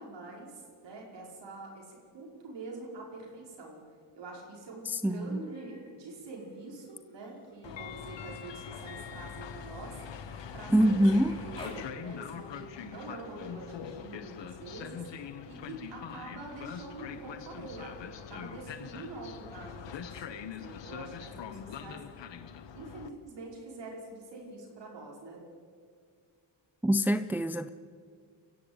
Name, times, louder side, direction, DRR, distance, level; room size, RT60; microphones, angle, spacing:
voice 1, 0.0-3.8 4.1-10.0 10.5-11.1 11.4-15.1 15.5-22.0 22.7-25.4, right 2 dB, 70° right, 5.5 m, -45 dB
voice 2, 4.9-5.4 10.7-11.4 26.8-27.7, equal, 5° right, 0.6 m, -25 dB
Human voice, 5.2-5.9 6.3-11.9 13.5-13.6, left 1 dB, 10° left, 5.4 m, -53 dB
Train, 7.6-23.1, left 8 dB, 70° left, 1.5 m, -43 dB
24.0 x 15.0 x 9.0 m
cardioid pair, 95°, 45 cm